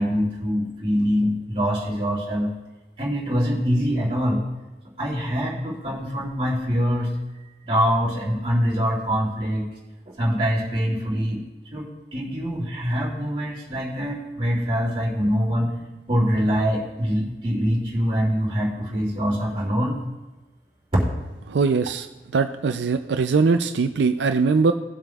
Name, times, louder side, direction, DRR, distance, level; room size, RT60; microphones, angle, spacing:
voice 1, 0.0-2.5 3.0-4.4 5.0-7.1 7.3-9.7 10.2-11.4 11.7-20.0 20.9-21.0, equal, 30° right, -6 dB, 2.6 m, -24 dB
voice 2, 21.5-22.1 22.3-24.7, right 4 dB, 85° right, 8 dB, 0.4 m, -21 dB
18.5 x 7.5 x 2.4 m, 1.1 s
head